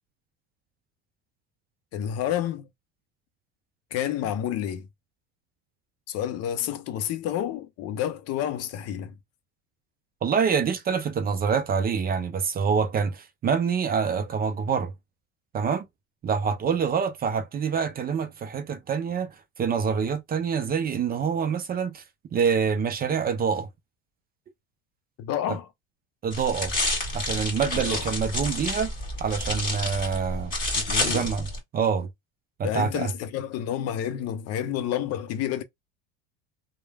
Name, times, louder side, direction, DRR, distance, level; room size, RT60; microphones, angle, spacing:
voice 1, 1.9-2.7 3.9-4.9 6.1-9.1 25.2-25.7 27.8-28.1 30.7-31.3 32.6-35.6, left 10 dB, 50° left, 0.5 m, -29 dB
voice 2, 10.2-14.9 15.5-15.9 16.2-22.0 22.3-23.7 25.5-25.6 26.2-26.7 27.1-28.9 29.2-30.5 31.0-31.5 31.7-32.1 32.6-33.1, right 6 dB, 30° right, 0.5 m, -26 dB
sound 1, 26.3-31.6, left 1 dB, 25° left, 1.7 m, -29 dB
3.0 x 2.1 x 2.2 m
supercardioid pair, 110°, 34 cm